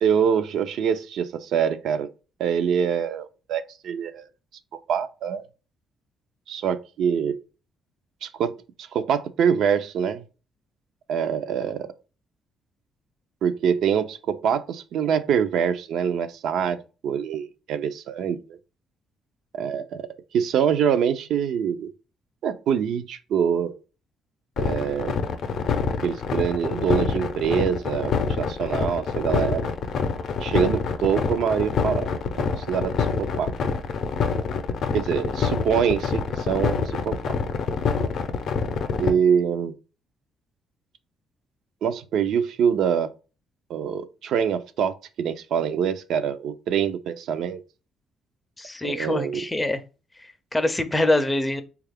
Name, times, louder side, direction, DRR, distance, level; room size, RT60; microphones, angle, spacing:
voice 1, 0.0-2.1 2.4-4.2 4.9-5.4 6.5-7.4 8.2-10.2 11.1-11.9 13.4-18.6 19.5-21.9 22.4-23.8 24.6-25.2 26.0-29.7 30.4-32.1 32.3-33.8 34.9-37.4 39.0-39.7 41.8-43.1 43.7-47.6 48.8-49.4, right 7 dB, 70° right, 0.4 m, -25 dB
sound 1, 24.6-39.1, left 5 dB, 65° left, 0.5 m, -25 dB
voice 2, 48.6-49.8 50.5-51.6, left 1 dB, 15° left, 0.4 m, -24 dB
3.5 x 2.3 x 3.3 m
cardioid pair, 115°, 0 cm